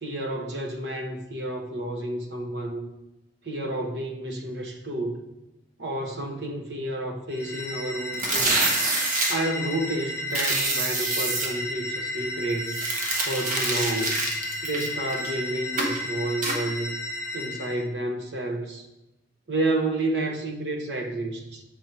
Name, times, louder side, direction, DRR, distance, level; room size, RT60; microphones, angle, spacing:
voice 1, 0.0-2.9 3.4-5.2 5.8-8.6 9.3-12.8 13.2-14.2 14.6-16.9 17.3-18.8 19.5-21.6, right 1 dB, 65° right, 3 dB, 1.0 m, -30 dB
sound 1, 7.3-17.8, left 2 dB, 15° left, 0.9 m, -33 dB
sound 2, 8.1-9.4 10.3-11.5 12.7-15.3 15.8-16.0 16.4-16.6, right 2 dB, 45° right, 1.1 m, -26 dB
7.2 x 4.3 x 4.4 m, 0.94 s
head